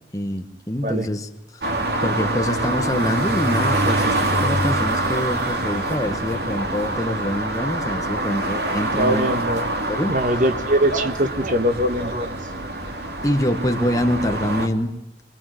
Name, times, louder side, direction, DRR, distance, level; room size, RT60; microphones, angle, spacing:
voice 1, 0.1-1.7 2.0-9.3 9.9-10.1 13.2-14.9, left 1 dB, 20° left, 5 dB, 1.7 m, -25 dB
sound 1, 1.6-14.7, right 1 dB, 65° right, 2.9 m, -25 dB
sound 2, 5.9-14.4, right 1 dB, 85° right, 5.5 m, -45 dB
voice 2, 9.0-9.7 10.1-12.4, right 1 dB, 45° right, 9 dB, 1.4 m, -22 dB
24.0 x 22.5 x 9.3 m, 0.86 s
head